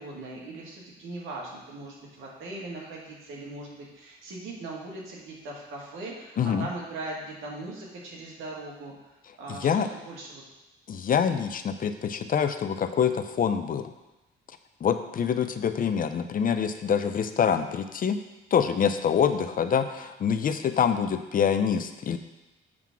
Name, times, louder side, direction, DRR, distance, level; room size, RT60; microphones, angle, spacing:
voice 1, 0.0-8.9 9.4-10.4 19.3-19.4, right 2 dB, 80° right, -3 dB, 1.9 m, -39 dB
voice 2, 6.4-6.7 9.5-9.9 10.9-13.9 14.8-18.2 18.5-22.2, left 7 dB, 45° left, 9 dB, 0.5 m, -25 dB
7.5 x 3.6 x 5.9 m, 1.0 s
cardioid pair, 90°, 20 cm